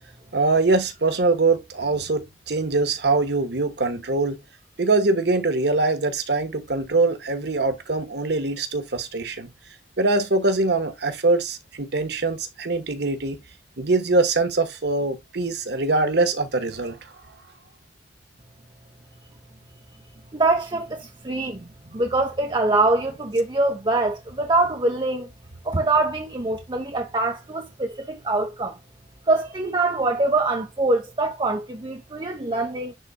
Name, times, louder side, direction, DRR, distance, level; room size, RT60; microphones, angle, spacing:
voice 1, 0.3-4.4 4.8-9.5 10.0-13.4 13.8-17.0, right 3 dB, 65° right, 1.2 m, -23 dB
voice 2, 20.3-25.3 25.6-28.8 29.3-32.9, right 2 dB, 25° right, 0.8 m, -24 dB
10.5 x 4.1 x 2.2 m
head